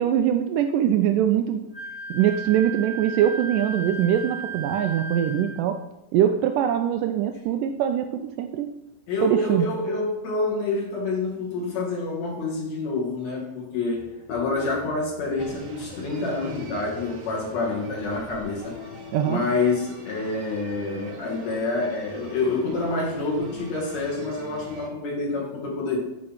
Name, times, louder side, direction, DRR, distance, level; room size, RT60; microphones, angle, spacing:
voice 1, 0.0-1.6 2.1-5.8 6.1-8.7 9.2-9.7 19.1-19.4, right 10 dB, 80° right, 6 dB, 1.9 m, -22 dB
Wind instrument woodwind instrument, 1.7-5.6, right 3 dB, 10° right, 0.9 m, -35 dB
voice 2, 9.1-18.8 19.2-26.0, left 3 dB, 55° left, -3 dB, 2.8 m, -27 dB
sound 1, 14.0-20.1, left 9 dB, 85° left, 2.3 m, -44 dB
sound 2, 15.4-24.9, right 2 dB, 65° right, 1.3 m, -43 dB
8.6 x 4.9 x 5.6 m, 0.94 s
omnidirectional pair, 4.1 m